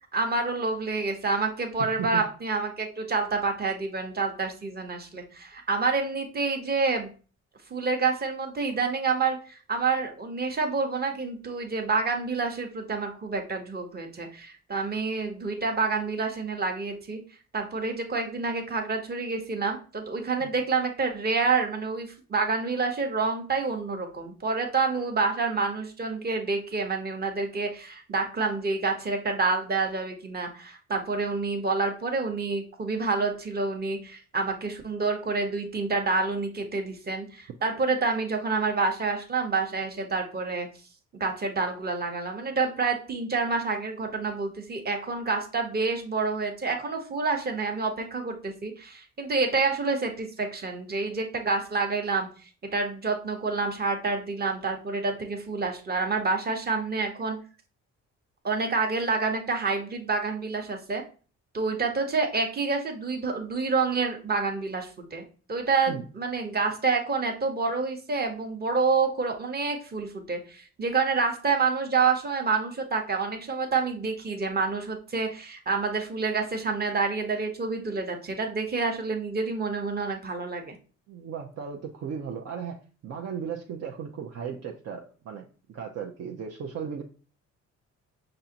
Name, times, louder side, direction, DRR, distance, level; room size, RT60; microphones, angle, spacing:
voice 1, 0.1-7.1 7.7-17.2 17.5-40.7 41.2-52.3 52.7-57.4 58.4-61.0 61.5-65.2 65.5-80.7, right 4 dB, 30° right, 3 dB, 1.0 m, -28 dB
voice 2, 1.8-2.2 20.4-20.5 65.9-66.0 81.1-82.8 83.0-87.0, right 7 dB, 55° right, 1 dB, 0.6 m, -36 dB
5.4 x 2.6 x 2.8 m, 0.37 s
cardioid pair, 90°, 30 cm